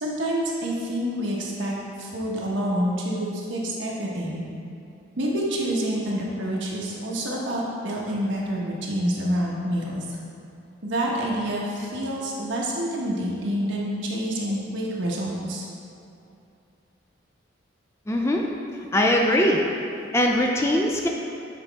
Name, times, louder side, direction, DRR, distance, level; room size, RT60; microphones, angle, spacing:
voice 1, 0.0-4.4 5.2-10.2 10.8-15.7, equal, 70° right, -4 dB, 1.1 m, -27 dB
voice 2, 18.1-18.4 18.9-19.6 20.1-21.1, left 1 dB, 15° left, 0 dB, 0.3 m, -21 dB
8.1 x 4.1 x 3.4 m, 2.7 s
head